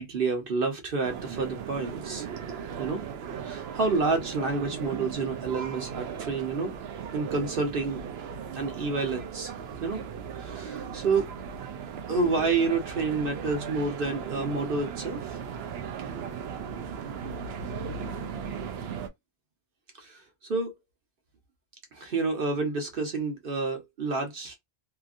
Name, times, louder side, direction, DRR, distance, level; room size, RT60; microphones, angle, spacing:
voice 1, 0.0-2.3 2.8-3.0 3.4-6.7 7.1-8.0 8.6-9.5 9.8-10.0 10.4-11.3 12.1-15.4 20.0-20.2 20.5-20.7 21.9-24.5, right 4 dB, 60° right, 1.1 m, -29 dB
sound 1, 1.0-19.1, right 7 dB, 75° right, 0.8 m, -37 dB
2.9 x 2.5 x 2.4 m
omnidirectional pair, 1.1 m